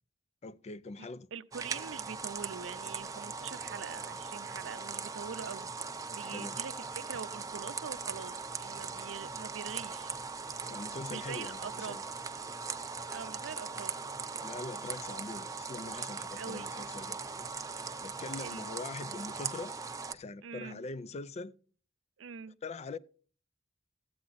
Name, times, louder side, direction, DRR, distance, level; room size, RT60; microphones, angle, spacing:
voice 1, 0.4-1.3 6.2-6.6 10.7-12.0 14.4-17.5 18.0-19.7 20.1-21.5 22.6-23.0, left 3 dB, 35° left, 0.4 m, -43 dB
voice 2, 1.0-5.7 6.1-10.2 11.1-12.0 13.1-13.9 16.4-16.7 18.4-18.6 20.4-20.8 22.2-22.5, right 6 dB, 85° right, 0.5 m, -44 dB
sound 1, 1.5-20.1, right 5 dB, 20° right, 0.6 m, -40 dB
14.0 x 8.6 x 4.0 m
head